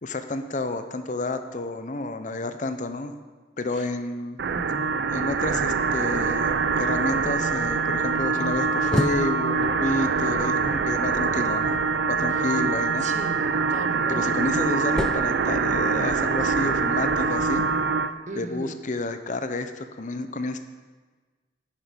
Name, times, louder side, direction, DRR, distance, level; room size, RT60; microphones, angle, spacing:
voice 1, 0.0-3.1 3.6-4.4 5.1-11.8 12.1-13.1 14.1-17.6 18.3-20.6, left 2 dB, 45° left, 9 dB, 0.7 m, -30 dB
voice 2, 4.4-5.0 13.0-14.4 18.3-18.8, right 2 dB, 40° right, 7 dB, 0.9 m, -37 dB
sound 1, 4.4-18.1, right 4 dB, 60° right, 0.4 m, -24 dB
sound 2, 8.3-11.5 13.7-16.3, left 1 dB, 5° left, 0.3 m, -33 dB
10.5 x 9.1 x 5.2 m, 1.4 s
head